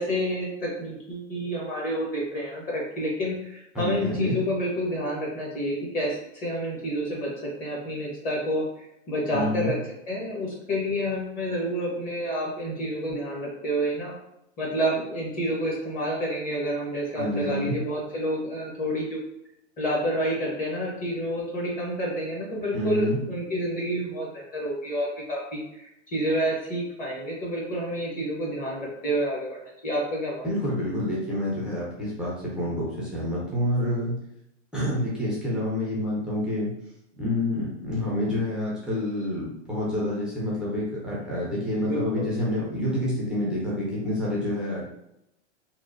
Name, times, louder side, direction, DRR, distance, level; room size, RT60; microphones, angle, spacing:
voice 1, 0.0-9.8 10.1-14.2 14.6-19.2 19.8-29.6 29.8-30.5 41.8-42.3, equal, 25° left, -3 dB, 0.7 m, -29 dB
voice 2, 3.7-4.4 9.3-9.7 17.2-17.8 22.7-23.2 30.4-34.2 34.7-36.7 37.2-44.8, left 1 dB, 5° right, -7 dB, 0.3 m, -28 dB
2.9 x 2.0 x 2.4 m, 0.82 s
hypercardioid pair, 130°, 36 cm